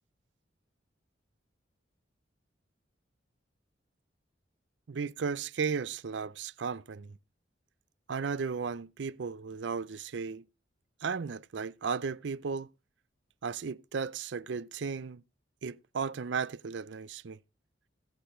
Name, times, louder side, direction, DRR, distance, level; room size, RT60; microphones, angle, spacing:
voice 1, 4.9-7.2 8.1-10.4 11.0-12.7 13.4-15.2 15.6-17.4, right 5 dB, 65° right, 0.5 m, -35 dB
17.5 x 6.7 x 4.4 m
head